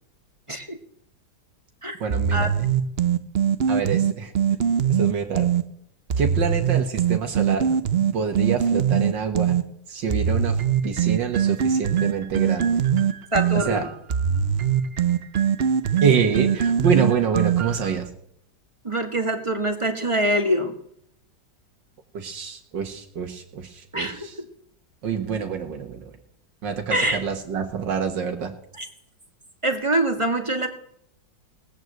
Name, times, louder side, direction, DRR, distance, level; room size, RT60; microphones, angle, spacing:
voice 1, 2.0-2.5 3.7-4.3 4.9-5.5 6.2-7.8 8.1-9.6 9.9-12.9 13.5-13.8 16.0-18.1 22.1-24.4 25.0-26.1 26.6-28.5, right 6 dB, 85° right, 4 dB, 2.1 m, -26 dB
sound 1, 2.1-5.6 6.1-9.6 10.1-17.9, right 8 dB, 50° right, 0.7 m, -22 dB
voice 2, 13.3-13.9 18.8-20.7 23.9-24.3 26.9-27.2 28.8-28.9 29.6-30.7, right 1 dB, 15° right, 5 dB, 1.9 m, -24 dB
19.0 x 9.2 x 7.9 m, 0.72 s
omnidirectional pair, 1.9 m